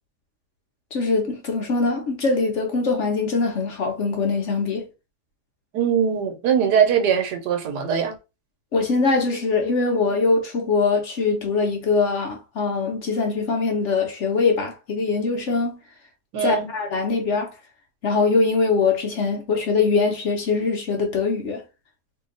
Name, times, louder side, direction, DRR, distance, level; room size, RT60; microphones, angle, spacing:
voice 1, 0.9-4.8 8.7-15.8 16.4-17.5 18.0-21.6, left 4 dB, 55° left, 0.9 m, -22 dB
voice 2, 5.7-8.1 16.3-16.7, right 8 dB, 85° right, 1.4 m, -21 dB
2.8 x 2.8 x 3.8 m
omnidirectional pair, 1.8 m